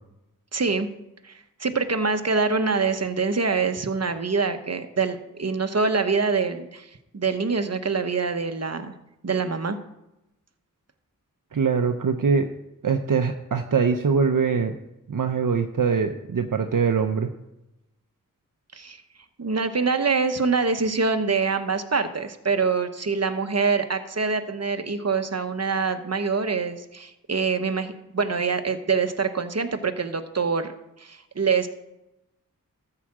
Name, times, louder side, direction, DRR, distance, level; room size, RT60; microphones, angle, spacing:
voice 1, 0.5-0.9 1.2-6.9 7.1-8.9 9.2-9.8 18.7-19.0 19.4-30.7 31.0-31.7, right 4 dB, 50° right, 8 dB, 1.0 m, -25 dB
voice 2, 11.5-12.5 12.8-14.8 15.1-17.3, right 5 dB, 65° right, 6 dB, 0.7 m, -23 dB
13.5 x 4.9 x 7.3 m, 0.92 s
wide cardioid pair, 50°, 34 cm